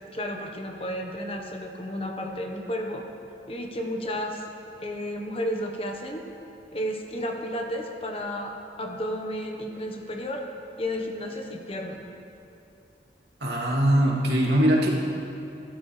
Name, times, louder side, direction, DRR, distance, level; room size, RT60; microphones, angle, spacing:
voice 1, 0.1-3.0 3.5-4.4 4.8-6.2 6.7-10.4 10.8-12.0, equal, 30° left, 2 dB, 1.2 m, -32 dB
voice 2, 13.4-14.9, right 1 dB, 70° right, -4 dB, 2.7 m, -21 dB
24.0 x 13.0 x 3.4 m, 2.8 s
head